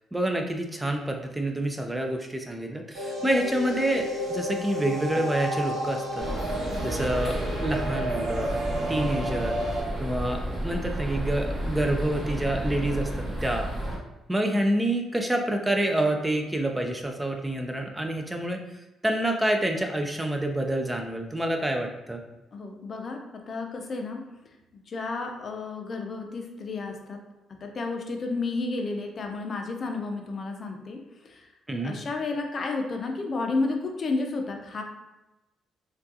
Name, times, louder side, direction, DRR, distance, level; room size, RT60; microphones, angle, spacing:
voice 1, 0.1-6.2 6.8-8.6 8.9-9.6 10.0-13.1 13.4-13.7 14.3-18.6 19.0-22.2 31.7-31.9, right 1 dB, 10° right, 3 dB, 0.3 m, -27 dB
sound 1, 2.9-9.8, equal, 90° right, 1.0 m, -32 dB
sound 2, 6.2-14.0, right 1 dB, 35° right, 1.1 m, -32 dB
voice 2, 22.5-24.2 24.7-27.2 27.6-31.4 31.8-34.8, left 3 dB, 45° left, 3 dB, 0.5 m, -32 dB
3.5 x 2.3 x 2.6 m, 0.99 s
cardioid pair, 90°, 0 cm